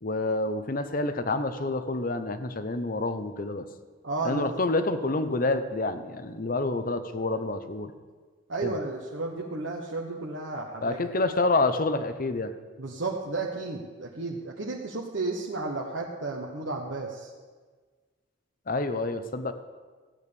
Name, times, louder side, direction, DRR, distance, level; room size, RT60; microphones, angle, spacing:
voice 1, 0.0-3.6 4.2-7.9 8.6-8.7 10.8-12.5 18.7-19.5, left 2 dB, 45° left, 10 dB, 0.8 m, -28 dB
voice 2, 4.0-4.5 8.5-11.0 12.8-17.3, right 3 dB, 70° right, -2 dB, 1.2 m, -33 dB
15.0 x 8.9 x 6.9 m, 1.4 s
head